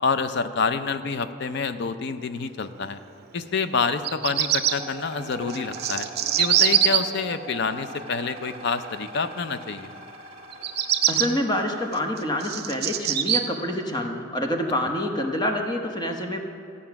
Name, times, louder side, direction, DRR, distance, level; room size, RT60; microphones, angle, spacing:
voice 1, 0.0-3.0 3.3-6.1 6.4-9.9, left 5 dB, 60° left, 11 dB, 0.5 m, -27 dB
Bird vocalization bird call bird song, 3.9-4.7 5.5-7.0 10.5-11.3 11.9-13.4, right 10 dB, 50° right, 0.6 m, -22 dB
sound 1, 4.6-12.2, right 2 dB, 30° right, 1.1 m, -41 dB
voice 2, 11.1-16.4, left 1 dB, 20° left, 3 dB, 1.0 m, -27 dB
13.0 x 8.5 x 5.8 m, 2.3 s
head